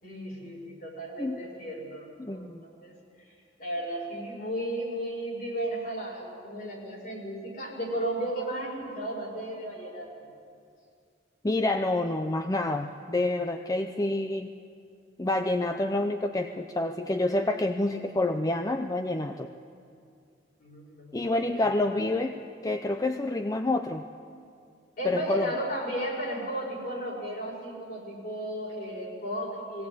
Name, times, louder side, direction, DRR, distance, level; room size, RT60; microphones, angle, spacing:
voice 1, 0.0-3.0 3.6-10.3 20.6-21.6 25.0-29.9, right 1 dB, 50° left, -2 dB, 5.3 m, -34 dB
voice 2, 2.2-2.6 11.4-14.5 15.2-19.5 21.1-24.0 25.0-25.5, left 2 dB, 20° left, 7 dB, 0.5 m, -28 dB
21.0 x 17.5 x 8.5 m, 2.4 s
head